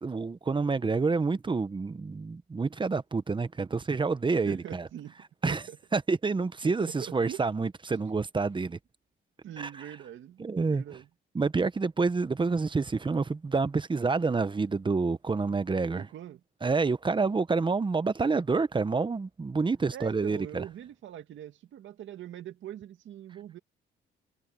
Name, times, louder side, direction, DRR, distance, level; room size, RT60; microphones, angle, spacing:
voice 1, 0.0-4.9 5.4-5.6 5.9-8.8 9.6-9.7 10.4-10.8 11.3-16.1 16.6-20.6, right 4 dB, 25° right, 1.0 m, -28 dB
voice 2, 4.5-5.2 5.4-5.8 6.6-7.4 9.4-11.1 15.9-16.4 19.9-23.6, right 11 dB, 75° right, 2.1 m, -43 dB
cardioid pair, 90°, 20 cm